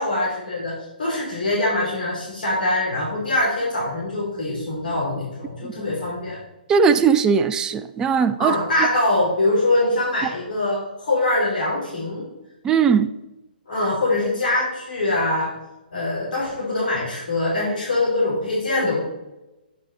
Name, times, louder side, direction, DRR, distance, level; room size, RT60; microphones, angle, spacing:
voice 1, 0.0-6.4 8.4-12.3 13.7-15.5 15.9-19.0, left 2 dB, 60° left, -6 dB, 3.1 m, -23 dB
voice 2, 6.7-8.6 12.6-13.1, right 6 dB, 15° right, 11 dB, 0.3 m, -18 dB
8.9 x 5.4 x 4.1 m, 0.97 s
figure-of-eight pair, 125°, 5 cm